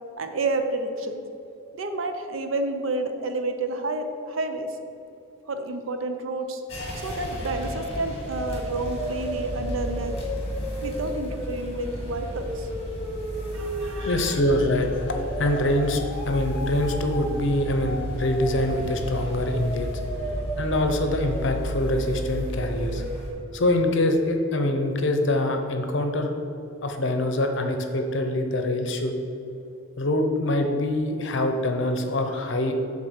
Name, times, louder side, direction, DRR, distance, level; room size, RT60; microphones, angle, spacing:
voice 1, 0.2-1.2 1.7-4.8 5.5-6.6 7.0-10.2 10.8-12.7 13.5-14.4, right 2 dB, 70° right, 6 dB, 0.6 m, -30 dB
sound 1, 6.7-23.3, equal, 30° left, 1.8 m, -31 dB
voice 2, 14.0-20.0 20.6-23.0 23.5-26.3 26.8-29.1 30.0-32.8, left 1 dB, 60° left, 5 dB, 0.7 m, -24 dB
7.7 x 3.7 x 6.5 m, 2.8 s
head